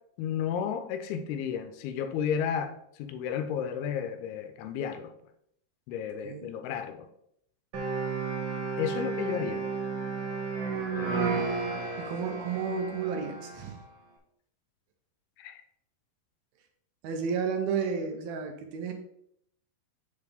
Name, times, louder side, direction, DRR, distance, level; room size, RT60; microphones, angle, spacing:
voice 1, 0.2-2.7 3.0-5.1 5.9-7.1 8.8-9.6 15.4-15.6, left 8 dB, 80° left, 8 dB, 2.6 m, -32 dB
sound 1, 7.7-13.7, right 4 dB, 60° right, 1.2 m, -32 dB
voice 2, 12.0-13.8 17.0-18.9, right 5 dB, 75° right, 5 dB, 2.6 m, -32 dB
7.0 x 6.6 x 3.5 m, 0.73 s
omnidirectional pair, 4.5 m